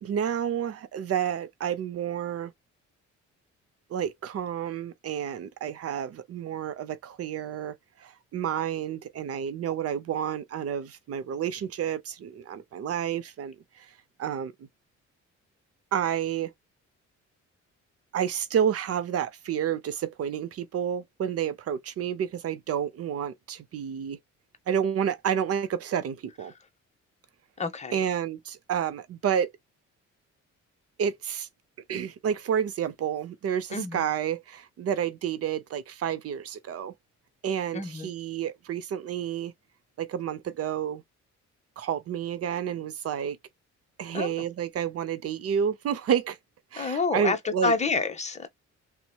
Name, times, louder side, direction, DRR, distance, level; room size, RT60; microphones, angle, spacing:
voice 1, 0.0-2.5 3.9-13.9 14.2-14.5 15.9-16.5 18.1-24.2 24.7-26.5 27.9-29.5 31.0-31.5 31.9-36.9 37.4-39.5 40.0-41.0 41.8-43.4 44.0-46.4 46.7-47.7, right 8 dB, 50° right, 0.6 m, -30 dB
voice 2, 27.6-28.0 33.7-34.1 37.7-38.1 44.1-44.3 46.8-48.5, left 4 dB, 25° left, 0.8 m, -28 dB
2.8 x 2.2 x 2.2 m
cardioid pair, 90°, 30 cm